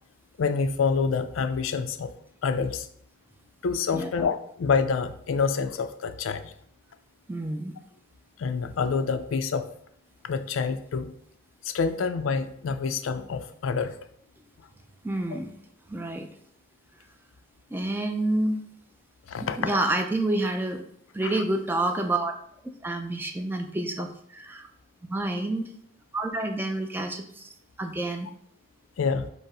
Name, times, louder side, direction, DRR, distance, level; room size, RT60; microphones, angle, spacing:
voice 1, 0.4-2.1 2.4-2.9 3.6-6.5 8.4-9.7 10.2-11.1 11.6-14.0 15.3-15.4 19.3-19.8 21.2-21.4 29.0-29.3, left 5 dB, 85° left, 9 dB, 0.4 m, -27 dB
voice 2, 3.9-4.3 7.3-7.7 15.0-15.5 15.9-16.3 17.7-18.6 19.6-20.8 21.1-22.3 22.8-24.7 25.1-25.7 26.1-27.5 27.8-28.3, right 2 dB, 10° right, 5 dB, 0.3 m, -28 dB
5.2 x 2.0 x 4.8 m, 0.67 s
head